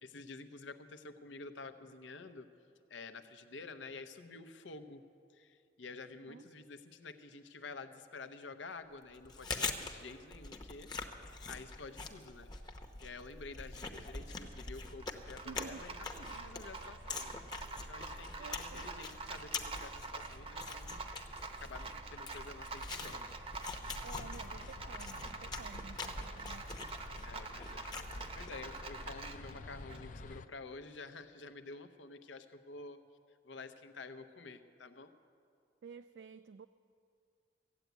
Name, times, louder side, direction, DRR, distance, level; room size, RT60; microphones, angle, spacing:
voice 1, 0.0-2.5 2.9-5.0 5.3-10.9 11.5-12.5 13.0-17.4 17.9-21.0 21.6-23.3 27.2-33.0 33.4-35.1, left 3 dB, 85° left, 10 dB, 0.8 m, -50 dB
Chewing mastication, 9.1-28.7, left 4 dB, 25° left, 0.8 m, -44 dB
Rattle, 12.1-30.3, right 3 dB, 30° right, 0.7 m, -47 dB
voice 2, 15.4-15.9 18.4-18.9 24.0-26.7 35.8-36.7, right 5 dB, 65° right, 11 dB, 0.3 m, -51 dB
sound 1, 23.8-30.5, left 3 dB, 45° left, 0.4 m, -52 dB
15.0 x 8.2 x 9.2 m, 2.4 s
head